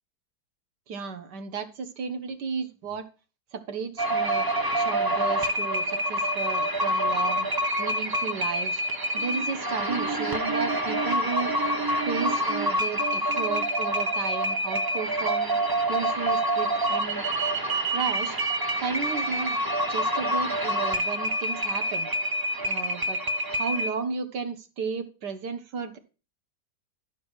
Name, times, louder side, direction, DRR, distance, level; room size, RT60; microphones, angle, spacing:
voice 1, 0.9-3.1 3.5-4.5 4.8-7.5 7.8-8.8 9.1-11.5 12.1-15.6 15.9-17.3 17.9-18.4 18.8-19.6 19.9-22.1 22.6-23.2 23.5-26.0, right 5 dB, 70° right, 9 dB, 1.8 m, -33 dB
sound 1, 4.0-23.9, right 1 dB, 30° right, 0.4 m, -27 dB
11.0 x 4.7 x 6.3 m, 0.33 s
omnidirectional pair, 1.9 m